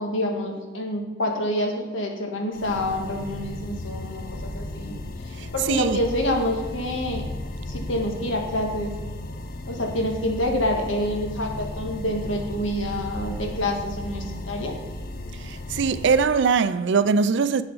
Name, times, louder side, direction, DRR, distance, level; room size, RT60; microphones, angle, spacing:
voice 1, 0.0-5.0 5.5-7.3 7.7-8.9 9.7-14.8, left 1 dB, 90° left, 1.6 m, -27 dB
sound 1, 2.5-16.2, left 1 dB, 50° left, 0.6 m, -35 dB
voice 2, 5.4-6.0 15.4-17.6, right 5 dB, 65° right, 0.4 m, -22 dB
7.9 x 6.7 x 5.5 m
head